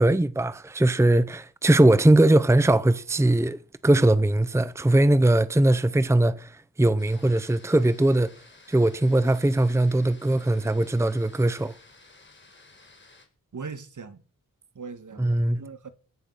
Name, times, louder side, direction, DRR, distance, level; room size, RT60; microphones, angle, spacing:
voice 1, 0.0-8.3 8.7-11.7 15.2-15.6, right 1 dB, 10° right, 0.8 m, -20 dB
sound 1, 7.0-13.3, left 3 dB, 35° left, 4.4 m, -54 dB
voice 2, 13.5-14.2 14.8-15.9, right 5 dB, 60° right, 1.9 m, -40 dB
17.0 x 14.0 x 5.8 m
wide cardioid pair, 95°, 34 cm